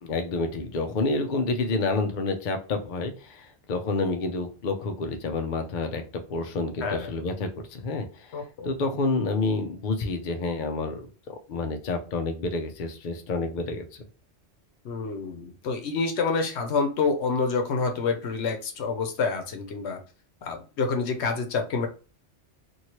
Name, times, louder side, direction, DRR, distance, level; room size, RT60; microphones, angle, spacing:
voice 1, 0.0-8.4 8.6-14.0, left 3 dB, 55° left, 5 dB, 0.7 m, -29 dB
voice 2, 8.3-8.7 14.8-20.0 20.4-21.9, left 4 dB, 75° left, 5 dB, 1.0 m, -27 dB
3.0 x 2.7 x 2.9 m, 0.35 s
omnidirectional pair, 1.1 m